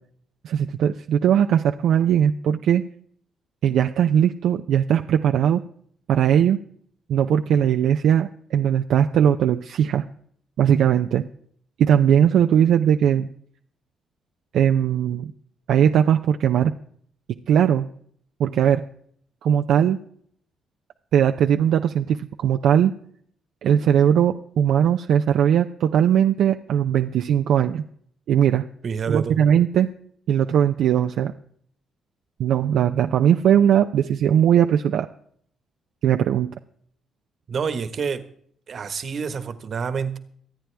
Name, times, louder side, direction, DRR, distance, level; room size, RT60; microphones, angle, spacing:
voice 1, 0.4-2.8 3.6-5.6 6.1-6.6 7.1-10.0 10.6-11.2 11.8-13.3 14.5-15.3 15.7-16.7 17.5-17.9 18.4-18.8 19.4-20.0 21.1-22.9 23.6-27.8 28.3-28.6 29.1-29.9 30.3-31.3 32.4-35.1 36.0-36.5, right 9 dB, 75° right, 6 dB, 0.6 m, -19 dB
voice 2, 28.8-29.4 37.5-38.2 38.7-40.2, right 6 dB, 50° right, 11 dB, 1.5 m, -27 dB
25.0 x 9.0 x 3.5 m, 0.62 s
cardioid pair, 90°, 0 cm